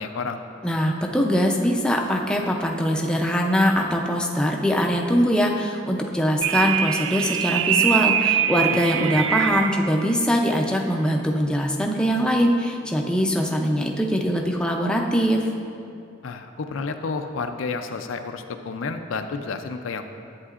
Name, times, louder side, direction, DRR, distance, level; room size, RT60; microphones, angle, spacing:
voice 1, 0.0-0.5 8.7-9.1 16.2-20.0, left 4 dB, 75° left, 7 dB, 0.4 m, -31 dB
voice 2, 0.6-15.5, equal, 5° left, 0 dB, 0.5 m, -22 dB
sound 1, 6.4-9.9, right 10 dB, 75° right, 0.3 m, -23 dB
11.0 x 8.2 x 2.5 m, 2.6 s
head